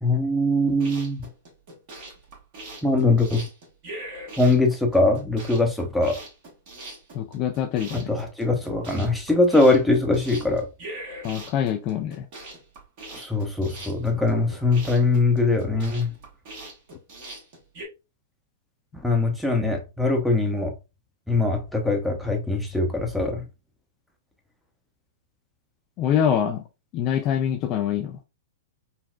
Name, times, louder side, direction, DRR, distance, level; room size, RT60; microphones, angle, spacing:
voice 1, 0.0-1.2 2.8-3.5 4.4-6.2 8.1-10.7 13.1-16.1 19.0-20.7 21.3-23.5, left 2 dB, ahead, 0.7 m, -22 dB
sound 1, 0.7-17.9, right 1 dB, 50° right, 1.4 m, -41 dB
voice 2, 7.1-8.1 11.2-12.3 26.0-26.6 26.9-28.2, left 9 dB, 40° left, 0.3 m, -25 dB
3.8 x 2.1 x 2.3 m
hypercardioid pair, 110°, 0 cm